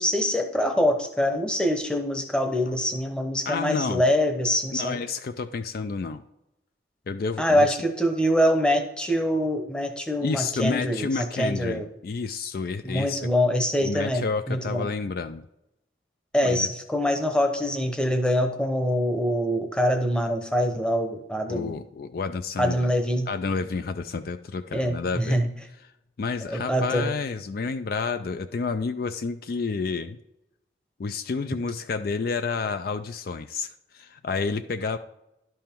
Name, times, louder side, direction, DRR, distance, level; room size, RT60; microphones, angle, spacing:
voice 1, 0.0-5.0 7.4-11.9 12.8-14.9 16.3-21.7 22.6-23.3 24.7-25.5 26.5-27.1, equal, 5° left, 6 dB, 0.8 m, -24 dB
voice 2, 3.5-4.0 4.7-6.2 7.1-7.8 10.2-13.3 13.8-15.4 16.4-16.7 21.5-22.9 23.3-25.4 25.8-25.9 26.2-30.2 31.0-35.0, left 4 dB, 50° left, 10 dB, 0.4 m, -30 dB
11.0 x 5.6 x 4.4 m, 0.87 s
head